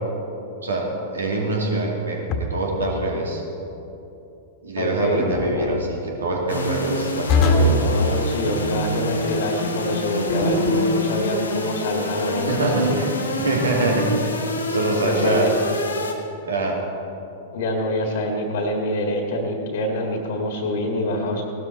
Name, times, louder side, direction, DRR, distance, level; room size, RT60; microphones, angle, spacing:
voice 1, 1.1-2.2 2.5-3.4 4.6-7.7 12.5-13.1 13.4-14.0 14.7-15.5 16.5-16.8, right 2 dB, 80° right, -1 dB, 2.7 m, -24 dB
sound 1, 2.3-2.8 5.3-5.8 7.3-7.8 10.3-11.0, left 2 dB, 40° left, 1.7 m, -21 dB
voice 2, 4.8-5.3 7.5-13.0 15.0-15.5 17.5-21.4, left 1 dB, 60° left, 3 dB, 1.9 m, -25 dB
sound 2, 6.5-16.1, left 1 dB, 80° left, 1.6 m, -27 dB
17.0 x 12.5 x 4.2 m, 2.9 s
figure-of-eight pair, 100°, 0 cm